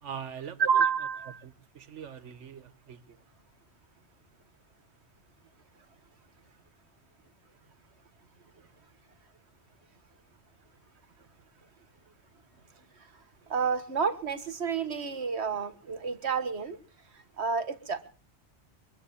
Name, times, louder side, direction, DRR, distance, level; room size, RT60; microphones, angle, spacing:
voice 1, 0.0-0.7 1.4-3.2, right 8 dB, 90° right, 1.4 m, -43 dB
voice 2, 0.6-1.4 13.5-16.8 17.4-18.1, right 6 dB, 65° right, 1.8 m, -29 dB
24.0 x 8.6 x 7.0 m
omnidirectional pair, 1.2 m